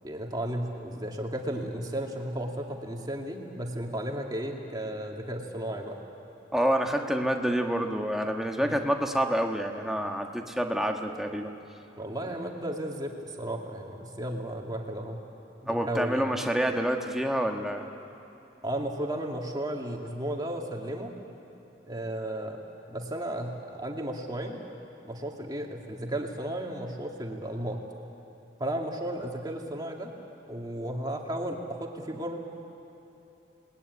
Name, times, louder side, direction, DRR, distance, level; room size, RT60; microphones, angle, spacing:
voice 1, 0.0-6.0 8.6-8.8 12.0-15.2 15.6-16.2 18.6-21.1 21.9-22.6 22.9-24.6 25.1-27.8 28.6-30.1 30.5-32.4, right 1 dB, 20° right, 1 dB, 2.3 m, -34 dB
voice 2, 6.5-11.5 15.7-17.9, equal, ahead, 2 dB, 1.4 m, -28 dB
28.5 x 20.0 x 9.7 m, 3.0 s
head